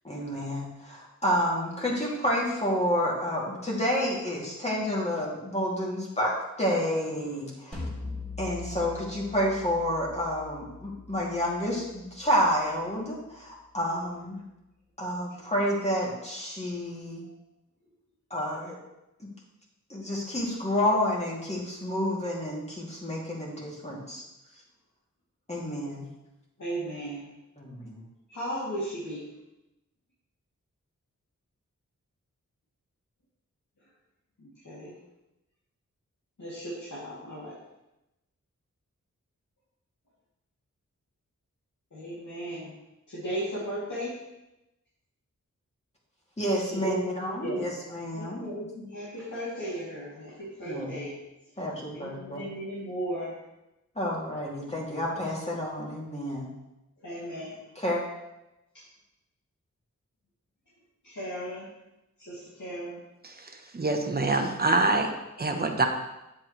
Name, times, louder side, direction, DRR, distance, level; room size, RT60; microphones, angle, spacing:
voice 1, 0.0-7.9 8.4-14.4 15.0-17.2 18.3-18.8 19.2-19.3 19.9-24.2 25.5-26.1 27.6-28.0 46.4-48.4 50.6-51.0 51.6-52.5 53.9-56.5 57.8-58.0, equal, 20° left, -4 dB, 2.6 m, -29 dB
sound 1, 7.7-12.8, left 3 dB, 5° left, 2.5 m, -42 dB
voice 2, 26.6-27.3 28.3-29.2 34.4-34.9 36.4-37.5 41.9-42.7 43.1-44.1 46.7-47.1 47.4-47.6 48.1-51.1 51.9-53.3 57.0-57.6 58.7-58.8 61.0-61.7 62.2-63.0, right 1 dB, 70° left, -10 dB, 2.6 m, -36 dB
voice 3, 63.2-65.1 65.4-65.9, right 3 dB, 30° right, 4 dB, 1.0 m, -26 dB
8.8 x 7.6 x 3.2 m, 0.94 s
wide cardioid pair, 55°, 31 cm